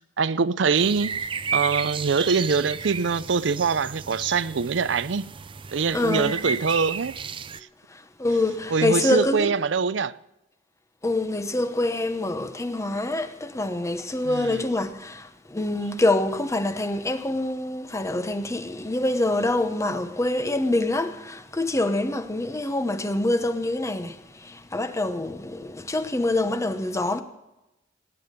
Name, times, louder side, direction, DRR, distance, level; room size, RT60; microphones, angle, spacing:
voice 1, 0.2-1.2 1.5-5.3 5.7-7.2 8.7-10.1 14.2-14.7, right 5 dB, 75° right, 0.6 m, -24 dB
sound 1, 0.7-7.6, right 5 dB, 30° right, 0.5 m, -33 dB
voice 2, 5.9-6.4 7.9-9.5 11.0-27.2, left 2 dB, 15° left, 0.9 m, -26 dB
19.0 x 10.0 x 5.2 m
head